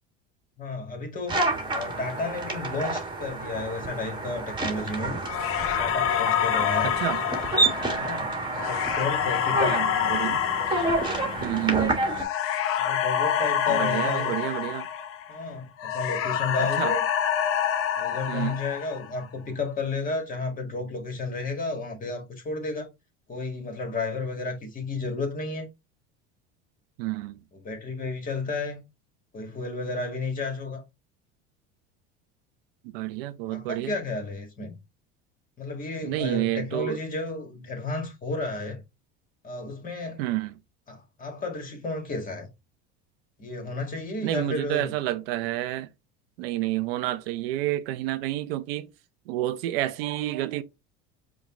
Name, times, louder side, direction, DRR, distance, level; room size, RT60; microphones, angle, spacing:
voice 1, 0.6-1.4 1.7-5.2 5.8-6.9 8.0-9.8 12.8-14.4 15.3-17.0 18.0-22.9 23.3-25.7 27.5-28.8 29.3-30.8 33.5-34.8 35.6-38.8 39.4-40.2 40.9-42.5 43.4-44.9, left 3 dB, 30° left, 1.8 m, -32 dB
sound 1, 1.3-12.2, right 2 dB, 15° right, 1.5 m, -29 dB
sound 2, 5.3-15.5 15.8-19.2, left 9 dB, 50° left, 0.7 m, -27 dB
voice 2, 6.8-7.2 9.7-9.8 10.1-10.4 11.4-12.0 13.7-14.9 16.6-16.9 18.3-18.6 27.0-27.4 32.9-33.9 36.0-37.0 40.2-40.5 44.2-45.9 46.4-48.9 49.3-50.6, right 15 dB, 80° right, 0.6 m, -29 dB
5.2 x 2.4 x 3.7 m
supercardioid pair, 110°, 29 cm